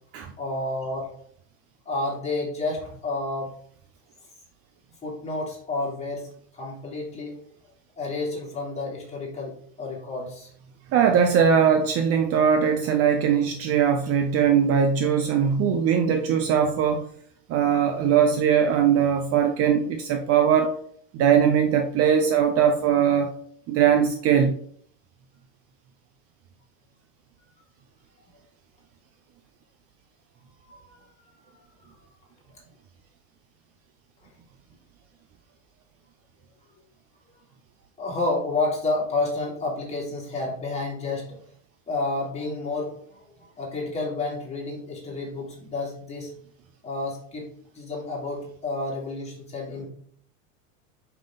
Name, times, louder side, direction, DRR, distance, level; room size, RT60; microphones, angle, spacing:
voice 1, 0.4-1.1 1.8-3.5 5.0-6.3 6.5-7.4 8.0-10.5 30.7-31.3 38.0-41.4 41.9-46.3 46.8-49.9, left 2 dB, 15° left, -5 dB, 3.0 m, -30 dB
voice 2, 10.9-17.1 17.5-20.8 21.1-23.3 23.7-24.6, right 7 dB, 35° right, 6 dB, 0.6 m, -20 dB
5.6 x 5.1 x 3.9 m, 0.62 s
supercardioid pair, 125°, 40 cm